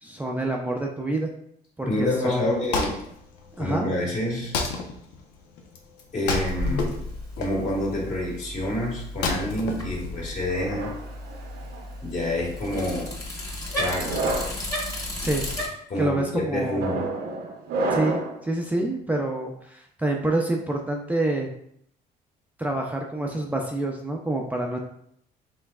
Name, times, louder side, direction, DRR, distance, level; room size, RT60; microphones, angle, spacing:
voice 1, 0.0-1.3 1.8-2.4 3.6-3.9 15.2-15.5 16.0-16.8 17.9-21.5 22.6-24.8, right 2 dB, 10° right, 0 dB, 0.5 m, -27 dB
voice 2, 1.8-2.9 3.6-4.6 6.1-7.0 7.4-10.9 12.0-13.1 13.7-14.2 15.9-17.1, left 1 dB, 45° left, -2 dB, 1.9 m, -28 dB
Wood, 2.3-10.7, left 4 dB, 90° left, 0.8 m, -32 dB
Bicycle, 6.3-15.7, left 1 dB, 20° left, 1.6 m, -33 dB
sound 1, 10.5-11.9 12.7-13.1 13.9-14.6 15.3-15.6 16.5-18.4, right 2 dB, 75° right, 0.8 m, -30 dB
5.5 x 3.9 x 2.4 m, 0.70 s
cardioid pair, 110°, 17 cm